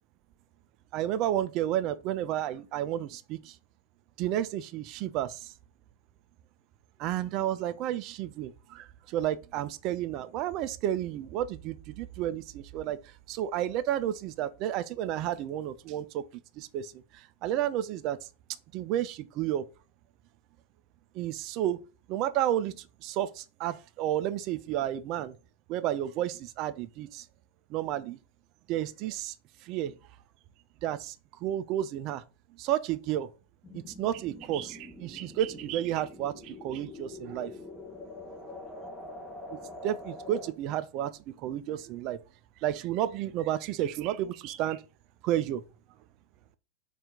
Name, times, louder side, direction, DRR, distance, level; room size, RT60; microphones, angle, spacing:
voice 1, 0.9-3.6 4.2-5.5 7.0-16.2 16.6-18.2 18.7-19.7 21.1-21.8 22.1-25.4 25.7-27.3 27.7-28.2 28.7-29.3 29.6-29.9 30.8-32.2 32.6-33.3 33.7-37.5 39.8-42.2 42.6-44.8 45.2-45.6, right 12 dB, 40° right, 0.3 m, -31 dB
sound 1, 33.6-40.5, left 2 dB, 5° left, 1.0 m, -45 dB
4.3 x 2.5 x 3.6 m
figure-of-eight pair, 90°, 0 cm